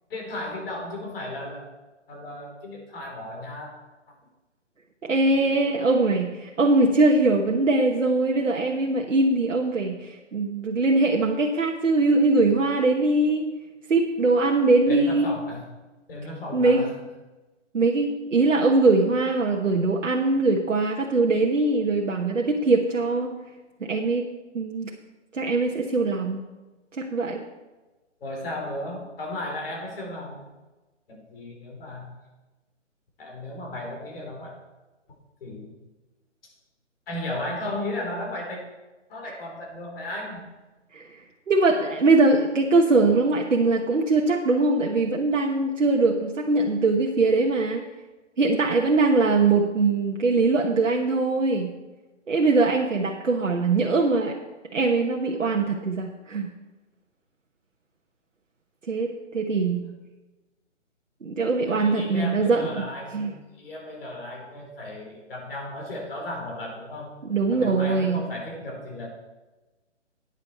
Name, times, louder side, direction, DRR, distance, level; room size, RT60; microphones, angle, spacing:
voice 1, 0.1-1.6 2.1-3.7 14.9-15.6 16.1-16.9 28.2-30.4 31.1-32.1 33.2-34.5 35.4-35.8 36.4-36.5 37.1-38.6 39.1-40.5 59.8-59.9 61.7-67.2 67.5-69.1, left 1 dB, 50° left, 0 dB, 3.7 m, -35 dB
voice 2, 5.0-13.5 13.9-15.3 16.5-16.8 17.7-23.4 23.8-24.9 25.3-26.4 27.0-27.4 40.9-41.1 41.5-47.8 48.4-51.7 52.3-54.4 54.7-56.5 58.9-59.8 61.2-62.8 63.1-63.3 67.3-68.3, right 3 dB, 85° right, 1 dB, 1.2 m, -22 dB
11.0 x 9.1 x 4.3 m, 1.1 s
figure-of-eight pair, 145°, 37 cm